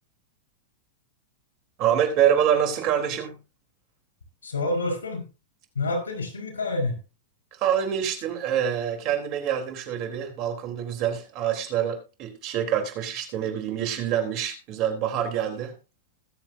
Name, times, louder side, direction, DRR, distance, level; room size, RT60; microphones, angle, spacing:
voice 1, 1.8-3.4 7.6-15.7, right 9 dB, 45° right, 5 dB, 3.9 m, -26 dB
voice 2, 4.4-5.3 5.7-7.0, left 2 dB, 90° left, 3 dB, 5.1 m, -28 dB
21.0 x 7.5 x 2.8 m, 0.30 s
hypercardioid pair, 110°, 0 cm